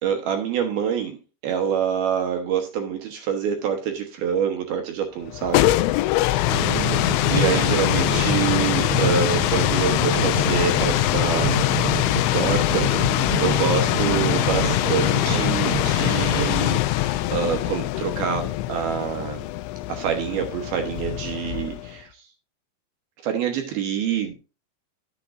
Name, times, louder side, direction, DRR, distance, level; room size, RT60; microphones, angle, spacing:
voice 1, 0.0-1.2 1.4-5.7 7.3-11.6 11.9-12.9 13.4-19.4 19.9-22.1 23.2-24.4, right 8 dB, 70° right, 4 dB, 2.6 m, -26 dB
sound 1, 5.2-22.0, left 16 dB, 85° left, 2.9 m, -23 dB
sound 2, 6.4-16.5, right 13 dB, 90° right, 3.9 m, -29 dB
11.5 x 8.3 x 2.6 m, 0.29 s
omnidirectional pair, 5.4 m